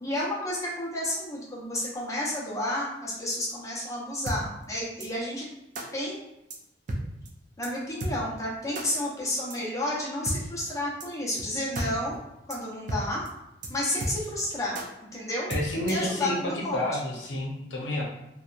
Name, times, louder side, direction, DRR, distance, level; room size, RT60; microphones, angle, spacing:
voice 1, 0.0-5.5 5.9-6.2 7.6-12.2 12.5-13.2 13.7-14.8 15.1-15.5 15.9-16.8, left 1 dB, 20° left, -5 dB, 0.7 m, -31 dB
sound 1, 4.3-4.4 5.0-5.1 5.7-5.9 6.5-6.6 6.9-7.0 7.3-7.4 7.6-7.7 8.0-8.1 8.7-8.9 9.5-9.6 10.2-10.4 11.0-11.1 11.4-11.5 11.7-11.9 12.1-12.2 12.5-12.6 12.9-13.0 13.3-13.4 13.6-13.7 14.0-14.4 14.7-14.9 15.5-16.1, right 1 dB, 45° right, 0.4 m, -32 dB
voice 2, 15.5-18.0, left 1 dB, 75° left, -2 dB, 0.7 m, -30 dB
2.7 x 2.2 x 2.4 m, 0.88 s
head